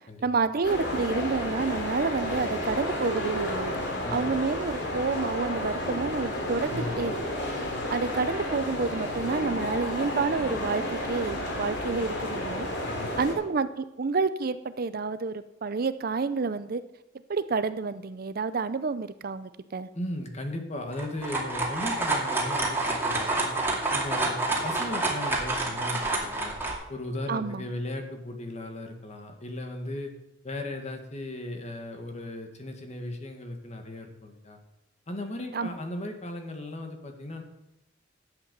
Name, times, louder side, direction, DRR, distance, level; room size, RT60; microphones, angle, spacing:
voice 1, 0.2-3.8 4.1-7.2 7.9-12.7 13.2-16.8 17.3-19.9 27.3-27.6 35.5-35.7, right 4 dB, 50° right, 13 dB, 0.5 m, -29 dB
sound 1, 0.6-13.3, left 1 dB, 65° left, 2.9 m, -31 dB
voice 2, 4.0-4.4 6.7-7.1 8.0-8.1 12.9-13.1 19.9-23.6 23.9-26.6 26.9-30.1 30.4-34.6 35.1-37.4, left 1 dB, 35° left, 4 dB, 1.7 m, -36 dB
sound 2, 20.9-26.8, right 2 dB, 10° right, 2.3 m, -28 dB
11.5 x 8.2 x 6.9 m, 0.92 s
head